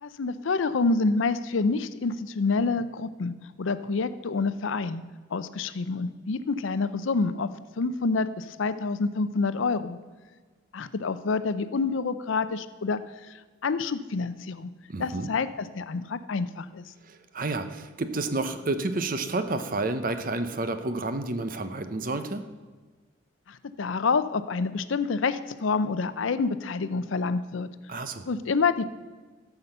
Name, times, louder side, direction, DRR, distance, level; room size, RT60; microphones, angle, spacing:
voice 1, 0.0-5.0 5.3-7.5 7.8-10.0 10.7-13.0 13.6-14.7 15.0-16.8 23.5-27.7 28.3-28.8, left 4 dB, 80° left, 13 dB, 0.5 m, -27 dB
voice 2, 14.9-15.3 17.1-22.4 27.9-28.3, right 2 dB, 45° right, 9 dB, 0.7 m, -30 dB
13.5 x 5.8 x 6.6 m, 1.3 s
head